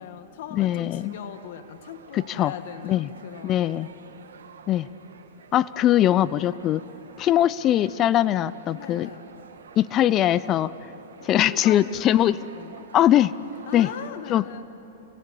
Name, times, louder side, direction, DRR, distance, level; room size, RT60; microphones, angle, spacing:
voice 1, 0.0-3.8 4.0-4.2 6.5-6.6 8.8-9.3 11.3-12.9 13.7-14.6, left 9 dB, 65° left, 9 dB, 1.4 m, -40 dB
voice 2, 0.5-1.2 2.1-2.5 2.8-3.1 3.4-3.9 4.7-4.9 5.5-6.8 7.2-9.1 9.8-10.7 11.2-12.4 12.9-13.3 13.7-13.9 14.3-14.6, left 12 dB, 35° left, 18 dB, 0.6 m, -21 dB
sound 1, 0.7-14.1, right 6 dB, 85° right, 2.0 m, -49 dB
30.0 x 24.5 x 7.4 m, 3.0 s
hypercardioid pair, 115°, 0 cm